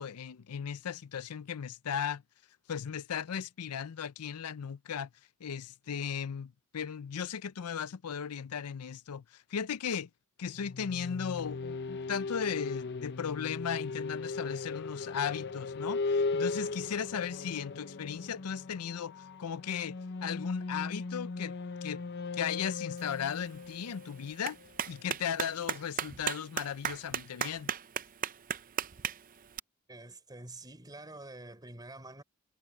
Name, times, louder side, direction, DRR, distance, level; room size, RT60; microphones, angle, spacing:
voice 1, 0.0-2.2 2.7-5.1 5.4-10.1 10.4-20.0 20.2-21.6 21.8-22.0 22.3-24.6 24.9-27.7, left 7 dB, 90° left, 0.5 m, -36 dB
sound 1, 10.5-25.1, left 3 dB, 50° left, 0.8 m, -38 dB
Clapping, 23.0-29.6, right 8 dB, 40° right, 0.6 m, -38 dB
voice 2, 29.9-32.2, right 2 dB, 20° right, 4.1 m, -47 dB
head